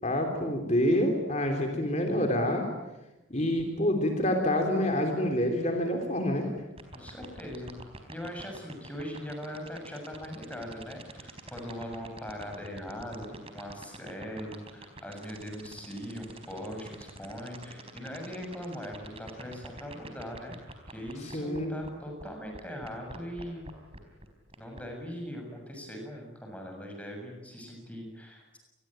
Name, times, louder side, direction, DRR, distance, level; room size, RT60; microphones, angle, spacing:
voice 1, 0.0-2.7 3.3-6.5 21.3-21.8, left 1 dB, 35° left, 4 dB, 3.4 m, -27 dB
sound 1, 6.8-21.9 22.2-22.3 22.5-24.8, right 2 dB, 30° right, 4.3 m, -45 dB
voice 2, 6.9-7.7 8.1-20.6 20.9-23.7 24.6-28.6, equal, 5° left, 2 dB, 7.1 m, -40 dB
28.5 x 21.0 x 9.0 m, 1.0 s
head